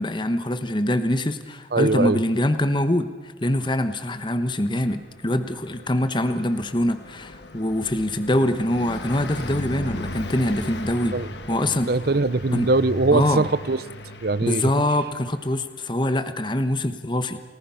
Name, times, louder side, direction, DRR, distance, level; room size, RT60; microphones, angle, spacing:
voice 1, 0.0-11.2 11.5-11.9 12.5-12.7 13.1-13.4 14.4-17.4, left 1 dB, 25° left, 10 dB, 1.1 m, -24 dB
voice 2, 1.7-2.2 11.1-11.3 11.9-13.8 14.2-14.7, right 3 dB, 55° right, 18 dB, 0.7 m, -21 dB
Car passing by, 4.7-15.7, left 1 dB, 70° left, 1.6 m, -37 dB
29.5 x 19.5 x 5.7 m, 1.4 s
head